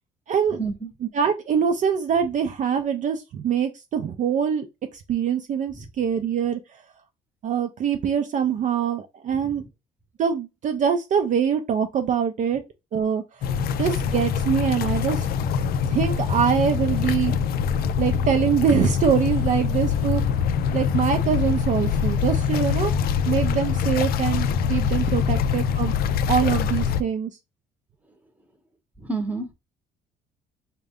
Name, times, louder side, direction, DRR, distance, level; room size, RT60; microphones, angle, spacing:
voice 1, 0.3-0.6 1.1-4.7 4.9-6.6 7.4-9.6 10.2-12.6 12.9-13.5 13.8-17.3 18.0-20.5 20.7-22.9 23.3-25.9 26.3-27.3, right 7 dB, 45° right, 0.5 m, -24 dB
sound 1, 13.4-27.0, left 7 dB, 65° left, 0.4 m, -24 dB
voice 2, 29.0-29.5, right 3 dB, 10° right, 0.8 m, -30 dB
3.6 x 2.2 x 3.5 m
cardioid pair, 110°, 17 cm